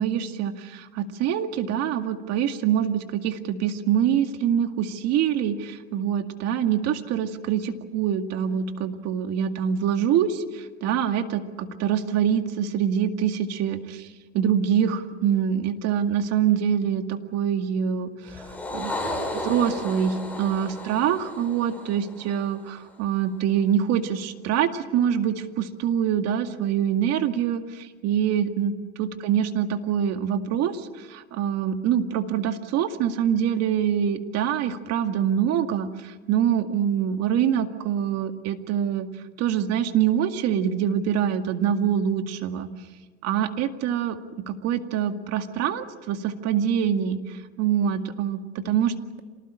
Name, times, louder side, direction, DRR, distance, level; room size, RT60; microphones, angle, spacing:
voice 1, 0.0-14.1 14.3-18.4 18.7-19.0 19.3-39.1 39.4-42.7 43.2-44.2 44.5-48.9, right 9 dB, 50° right, 7 dB, 2.2 m, -25 dB
sound 1, 18.3-22.9, left 1 dB, 5° left, 6.0 m, -34 dB
26.5 x 19.5 x 8.9 m, 1.3 s
supercardioid pair, 115°, 33 cm